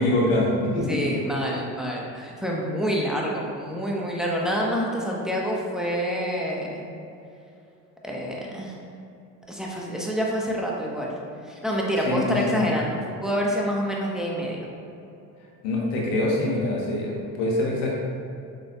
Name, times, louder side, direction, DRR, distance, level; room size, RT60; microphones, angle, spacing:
voice 1, 0.0-1.2 12.0-12.7 15.6-17.9, left 1 dB, 75° left, -2 dB, 1.4 m, -24 dB
voice 2, 0.9-6.9 8.0-8.8 9.5-11.2 11.4-14.7, equal, ahead, -3 dB, 1.2 m, -27 dB
6.7 x 6.6 x 2.4 m, 2.7 s
hypercardioid pair, 60°, 49 cm